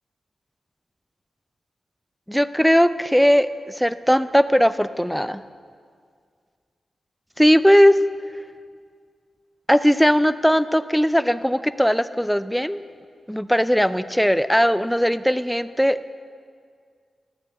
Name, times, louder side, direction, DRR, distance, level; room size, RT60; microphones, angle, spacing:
voice 1, 2.3-3.5 3.8-5.4 7.4-8.0 9.7-12.8 13.3-16.1, equal, ahead, 14 dB, 0.5 m, -18 dB
12.5 x 7.4 x 5.7 m, 2.1 s
supercardioid pair, 40°, 0 cm